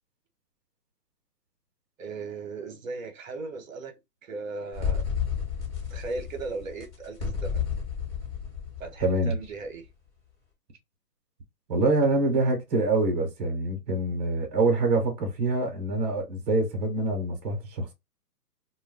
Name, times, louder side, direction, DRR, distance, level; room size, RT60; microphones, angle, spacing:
voice 1, 2.0-3.9 4.2-5.0 5.9-7.7 8.8-9.9, right 3 dB, 55° right, 0.8 m, -37 dB
sound 1, 4.7-9.5, left 7 dB, 30° left, 1.3 m, -31 dB
voice 2, 9.0-9.4 11.7-17.9, right 2 dB, 25° right, 0.7 m, -25 dB
2.2 x 2.1 x 3.5 m
hypercardioid pair, 155°, 47 cm